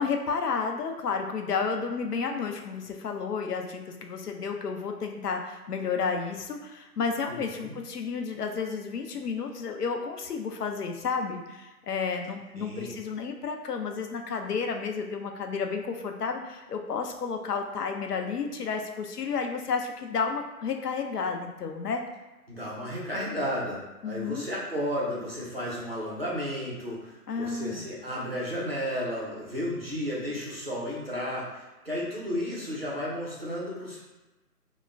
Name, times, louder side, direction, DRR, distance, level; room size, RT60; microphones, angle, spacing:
voice 1, 0.0-22.0 24.0-24.5 27.3-27.9, left 5 dB, 75° left, 4 dB, 0.6 m, -31 dB
voice 2, 7.3-7.8 12.5-12.9 22.5-34.0, equal, 40° right, -6 dB, 0.6 m, -33 dB
3.2 x 2.1 x 2.4 m, 1.1 s
hypercardioid pair, 180°, 47 cm